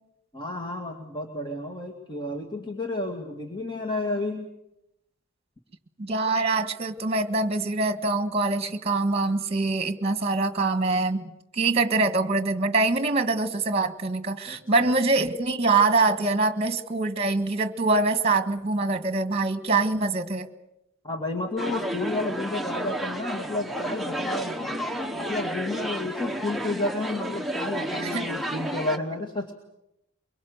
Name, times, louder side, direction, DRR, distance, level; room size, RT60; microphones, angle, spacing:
voice 1, 0.3-4.5 14.5-14.9 21.0-24.8 25.1-29.5, left 2 dB, 25° left, 3 dB, 2.0 m, -31 dB
voice 2, 6.0-20.5 28.0-28.3, right 3 dB, 30° right, 10 dB, 1.6 m, -24 dB
sound 1, 21.6-29.0, right 1 dB, ahead, 1.1 m, -31 dB
24.0 x 23.5 x 7.9 m, 0.85 s
head